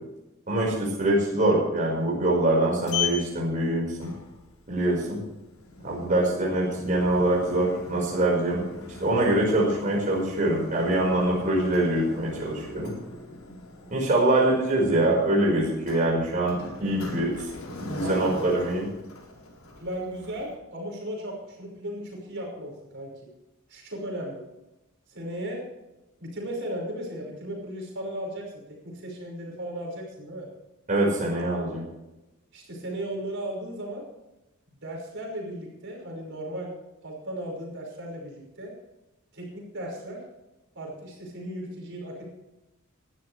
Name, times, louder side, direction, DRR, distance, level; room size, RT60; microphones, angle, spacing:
voice 1, 0.5-4.1 4.7-5.2 5.8-8.6 9.0-12.9 13.9-17.3 17.8-18.9 30.9-31.8, right 1 dB, 40° right, -3 dB, 5.2 m, -24 dB
Sliding door, 2.3-20.6, left 5 dB, 85° left, 4.4 m, -39 dB
voice 2, 18.0-18.9 19.8-23.1 23.7-24.4 25.1-25.6 26.2-28.4 28.8-30.5 32.5-34.0 34.8-36.7 37.0-38.7 39.3-40.2 40.8-42.2, equal, 60° right, -1 dB, 5.6 m, -36 dB
20.0 x 13.0 x 3.4 m, 0.96 s
head